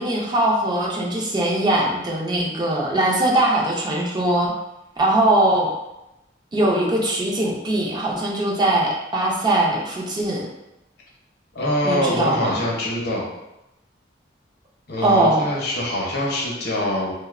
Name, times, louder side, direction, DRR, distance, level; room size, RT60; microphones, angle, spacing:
voice 1, 0.0-4.5 5.0-5.7 6.5-10.5 11.8-12.6 15.0-15.4, right 1 dB, 25° right, -3 dB, 0.4 m, -21 dB
voice 2, 11.5-13.3 14.9-17.1, left 1 dB, 65° left, -3 dB, 0.7 m, -24 dB
2.6 x 2.0 x 2.4 m, 0.91 s
head